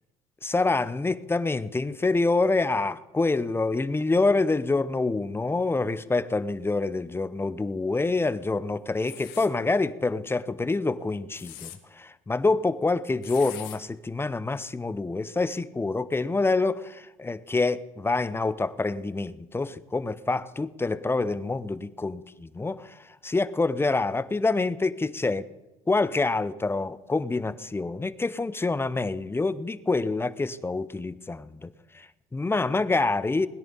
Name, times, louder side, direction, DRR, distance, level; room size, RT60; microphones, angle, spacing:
voice 1, 0.4-25.5 25.9-31.7 31.9-33.5, left 3 dB, 15° left, 0.7 m, -26 dB
sound 1, 9.0-9.5 11.1-11.8 13.2-13.8, left 13 dB, 85° left, 1.3 m, -42 dB
20.0 x 10.5 x 4.1 m
supercardioid pair, 80°, 15 cm